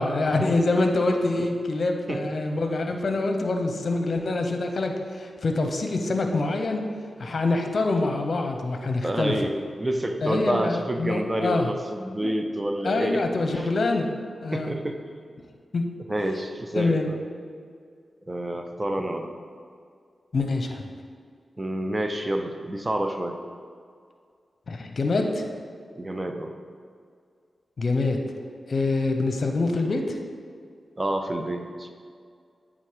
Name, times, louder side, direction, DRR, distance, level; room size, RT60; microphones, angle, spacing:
voice 1, 0.0-6.8 7.2-9.3 10.2-11.7 12.2-12.3 12.8-14.1 14.4-14.7 15.7-15.8 16.7-17.1 20.3-20.9 24.7-25.5 27.8-28.2 28.7-30.2, left 2 dB, 60° left, 4 dB, 0.8 m, -25 dB
voice 2, 9.0-13.2 13.5-13.7 14.5-15.0 16.1-17.2 18.3-19.3 21.6-23.4 26.0-26.5 31.0-31.9, right 1 dB, 25° right, 5 dB, 0.7 m, -28 dB
8.4 x 3.7 x 5.0 m, 2.2 s
cardioid pair, 50°, 0 cm